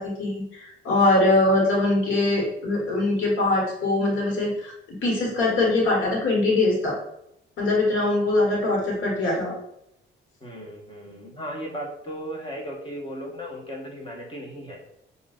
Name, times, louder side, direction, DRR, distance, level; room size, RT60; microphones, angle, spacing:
voice 1, 0.0-4.7 5.0-7.0 7.6-9.6, left 2 dB, 85° left, -2 dB, 1.5 m, -22 dB
voice 2, 10.4-14.8, equal, 25° left, 0 dB, 1.2 m, -36 dB
5.5 x 2.6 x 2.5 m, 0.77 s
cardioid pair, 90°, 20 cm